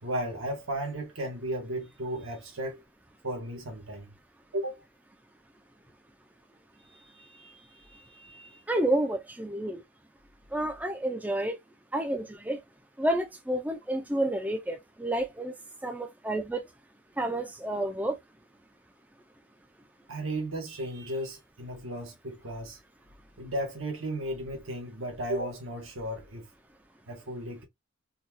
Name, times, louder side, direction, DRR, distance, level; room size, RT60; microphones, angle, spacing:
voice 1, 0.0-2.8 3.2-4.1 4.5-4.8 6.9-8.6 20.1-22.8 23.4-26.5 27.1-27.7, right 1 dB, 75° right, 1.2 m, -35 dB
voice 2, 8.7-9.8 10.5-11.6 11.9-12.6 13.0-15.5 15.8-16.6 17.2-18.2, right 1 dB, 5° right, 0.4 m, -30 dB
4.0 x 2.3 x 2.6 m
head